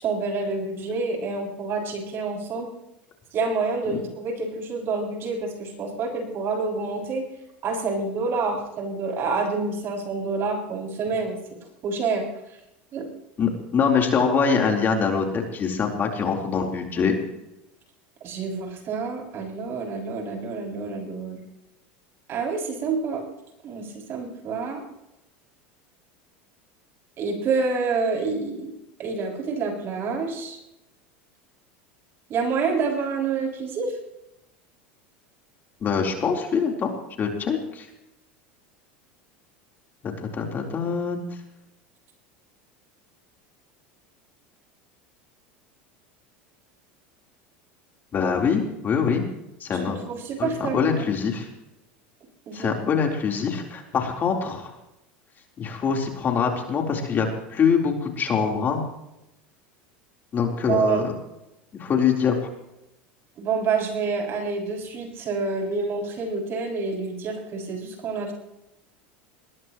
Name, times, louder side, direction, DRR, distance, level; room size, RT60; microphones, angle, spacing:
voice 1, 0.0-2.7 3.3-7.3 7.6-11.4 11.8-12.3 12.9-13.1 18.2-21.4 22.3-23.2 23.6-24.8 27.2-28.7 29.0-30.6 32.3-33.9 49.7-50.8 52.5-52.7 60.7-61.0 63.4-68.3, right 4 dB, 45° right, 0 dB, 6.9 m, -27 dB
voice 2, 13.4-17.1 35.8-36.9 37.2-37.9 40.0-41.2 48.1-49.2 49.6-50.0 50.4-51.5 52.5-54.7 55.6-58.8 60.3-61.0 61.8-62.4, left 6 dB, 35° left, 1 dB, 4.0 m, -24 dB
22.0 x 20.5 x 3.2 m, 0.88 s
hypercardioid pair, 100°, 6 cm